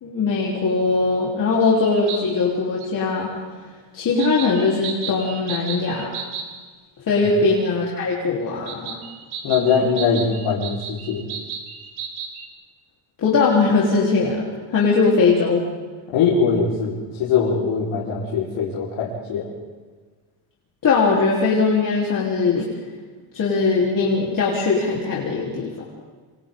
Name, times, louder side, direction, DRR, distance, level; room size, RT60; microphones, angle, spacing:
voice 1, 0.0-3.3 3.9-6.1 7.1-9.0 13.2-14.4 14.7-15.6 20.8-22.7 23.3-25.7, left 4 dB, 40° left, -5 dB, 4.0 m, -20 dB
sound 1, 1.8-2.2 2.8-2.9 4.2-6.5 8.7-12.5, right 6 dB, 75° right, 3.8 m, -33 dB
voice 2, 9.4-11.2 16.1-19.5, left 5 dB, 75° left, -6 dB, 4.9 m, -21 dB
28.5 x 27.5 x 3.9 m, 1.4 s
cardioid pair, 145°, 48 cm